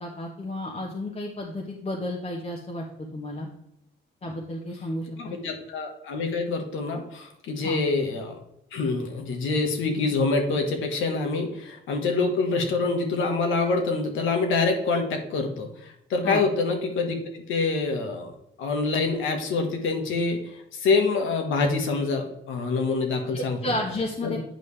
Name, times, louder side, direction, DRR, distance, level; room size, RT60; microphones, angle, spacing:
voice 1, 0.0-3.5 4.2-5.4 7.6-7.8 16.2-16.4 23.3-24.4, left 1 dB, 30° left, -2 dB, 1.2 m, -32 dB
voice 2, 5.2-8.4 8.7-18.3 18.6-20.4 20.7-23.7 24.2-24.4, left 3 dB, 85° left, 4 dB, 1.5 m, -26 dB
9.1 x 5.3 x 3.3 m, 0.79 s
cardioid pair, 90°, 20 cm